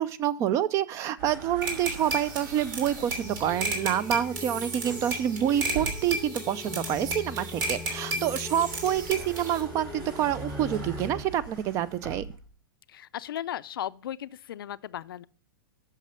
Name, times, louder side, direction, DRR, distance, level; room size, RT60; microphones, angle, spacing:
voice 1, 0.0-12.2, right 11 dB, 25° right, 0.4 m, -27 dB
sound 1, 1.2-3.7 4.8-6.4 6.9-12.5, right 4 dB, 80° right, 3.1 m, -43 dB
sound 2, 1.6-9.6, right 2 dB, 65° right, 2.9 m, -34 dB
sound 3, 3.2-11.2, left 3 dB, 5° left, 0.8 m, -41 dB
voice 2, 12.9-15.3, left 11 dB, 85° left, 0.5 m, -36 dB
8.3 x 6.6 x 5.6 m
hypercardioid pair, 150°, 12 cm